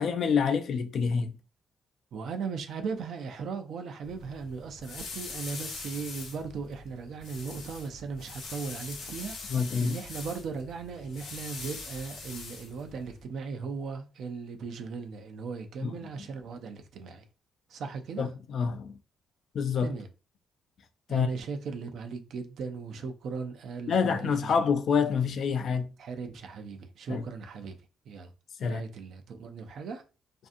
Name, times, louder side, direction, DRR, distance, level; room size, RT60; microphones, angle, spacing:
voice 1, 0.0-1.3 9.5-10.0 15.8-15.9 18.2-19.0 19.5-19.9 21.1-21.3 23.9-25.9 27.1-27.2 28.6-28.8, left 6 dB, 60° left, 0.4 m, -27 dB
voice 2, 2.1-9.4 9.8-17.2 17.7-18.3 19.8-20.1 21.1-24.5 26.0-27.8 28.1-28.3 28.6-30.0, right 5 dB, 70° right, 0.5 m, -38 dB
sound 1, 4.0-13.2, left 3 dB, 80° left, 0.8 m, -43 dB
2.5 x 2.4 x 2.5 m
cardioid pair, 90°, 0 cm